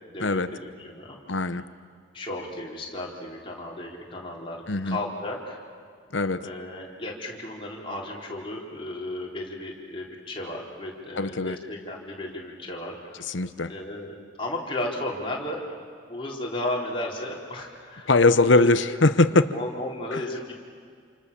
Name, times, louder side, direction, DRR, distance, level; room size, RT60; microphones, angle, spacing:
voice 1, 0.1-1.4 2.1-5.6 6.4-13.2 13.7-15.6 16.0-18.7 19.5-20.5, left 1 dB, 25° left, -2 dB, 4.1 m, -34 dB
voice 2, 1.3-1.6 4.7-5.0 6.1-6.4 11.2-11.6 13.3-13.7 18.1-19.5 20.1-20.2, left 2 dB, 65° left, 12 dB, 1.0 m, -21 dB
28.5 x 28.0 x 7.0 m, 2.2 s
head